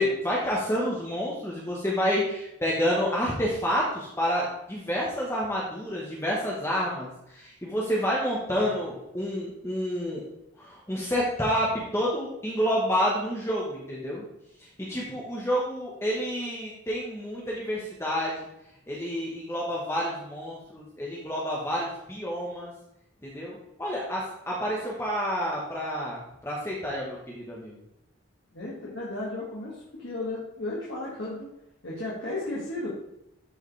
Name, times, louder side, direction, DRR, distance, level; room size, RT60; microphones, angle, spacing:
voice 1, 0.0-10.2 10.6-14.2 14.8-18.5 18.9-22.7 23.2-27.7, equal, 10° left, -4 dB, 1.1 m, -29 dB
voice 2, 28.5-31.5 31.8-32.9, left 2 dB, 55° left, -6 dB, 1.8 m, -34 dB
12.0 x 4.8 x 3.2 m, 0.85 s
head